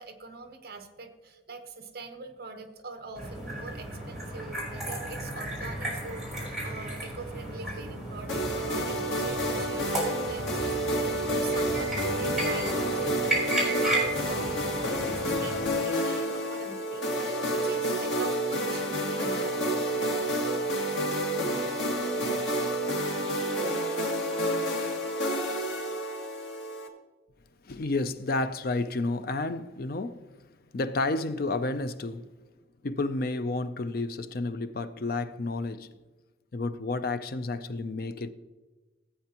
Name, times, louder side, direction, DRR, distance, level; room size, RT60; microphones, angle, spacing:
voice 1, 0.0-19.8, right 3 dB, 55° right, 1.2 m, -43 dB
sound 1, 3.2-15.7, right 1 dB, ahead, 3.6 m, -34 dB
sound 2, 8.3-26.9, right 1 dB, 80° left, 2.0 m, -29 dB
voice 2, 27.6-30.3 30.7-32.3 32.8-35.9 36.5-38.3, left 2 dB, 50° left, 0.5 m, -31 dB
15.5 x 8.5 x 2.9 m
head